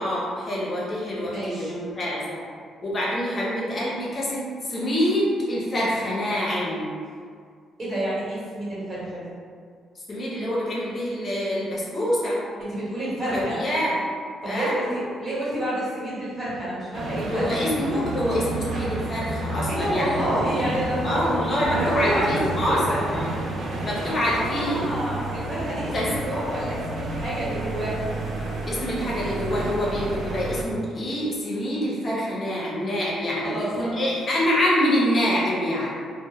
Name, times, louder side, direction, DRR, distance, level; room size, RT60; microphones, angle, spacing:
voice 1, 0.0-2.4 2.8-4.4 4.7-7.0 10.1-12.4 13.3-14.0 14.5-14.8 17.3-20.2 20.6-20.7 21.0-23.3 23.8-24.9 25.9-26.1 28.7-35.9, equal, 45° left, -6 dB, 0.6 m, -26 dB
voice 2, 1.2-1.7 7.8-9.3 12.6-13.6 14.4-17.7 19.7-23.3 23.6-23.9 24.2-28.0 33.4-34.1, right 1 dB, 50° right, -10 dB, 1.2 m, -29 dB
sound 1, 16.9-30.6, right 2 dB, 65° right, 0.4 m, -31 dB
2.1 x 2.1 x 3.0 m, 2.1 s
cardioid pair, 90°, 0 cm